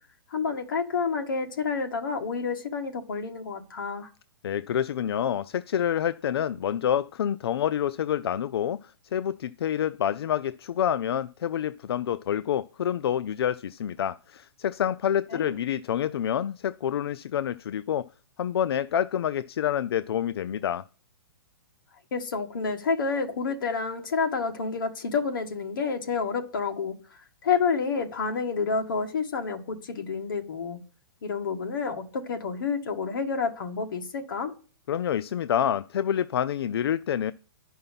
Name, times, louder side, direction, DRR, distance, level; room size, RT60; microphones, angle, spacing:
voice 1, 0.3-4.1 15.3-15.5 22.1-27.0 27.4-30.8 31.2-34.5, left 5 dB, 55° left, 1.5 m, -29 dB
voice 2, 4.4-18.1 18.4-20.8 34.9-37.3, left 9 dB, 75° left, 0.4 m, -27 dB
10.5 x 5.5 x 5.7 m
hypercardioid pair, 170°, 13 cm